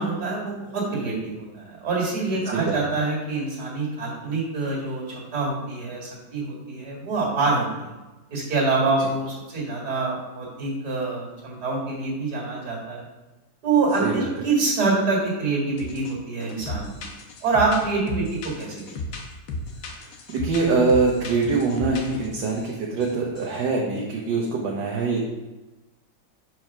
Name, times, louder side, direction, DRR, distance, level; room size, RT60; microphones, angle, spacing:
voice 1, 0.0-7.9 8.3-13.0 13.6-16.9 17.4-18.9, right 3 dB, 55° right, -3 dB, 2.6 m, -26 dB
sound 1, 15.8-16.1 16.4-22.7 23.0-23.6, left 2 dB, 80° left, 1.6 m, -35 dB
voice 2, 19.8-25.2, right 4 dB, 70° right, -2 dB, 1.6 m, -24 dB
4.8 x 4.6 x 5.9 m, 1.1 s
omnidirectional pair, 2.1 m